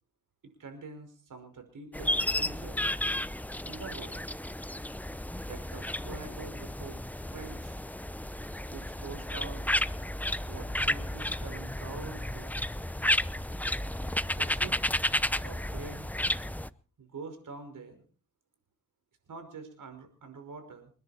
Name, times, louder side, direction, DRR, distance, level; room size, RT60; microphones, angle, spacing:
voice 1, 0.4-2.8 3.6-4.2 5.5-7.8 8.7-9.6 10.5-12.5 14.2-14.7 15.4-16.1 17.0-18.0 19.3-20.9, right 4 dB, 75° right, 6 dB, 5.6 m, -45 dB
sound 1, 1.9-16.7, left 1 dB, 5° left, 0.8 m, -32 dB
29.0 x 10.5 x 4.4 m, 0.40 s
cardioid pair, 65°, 31 cm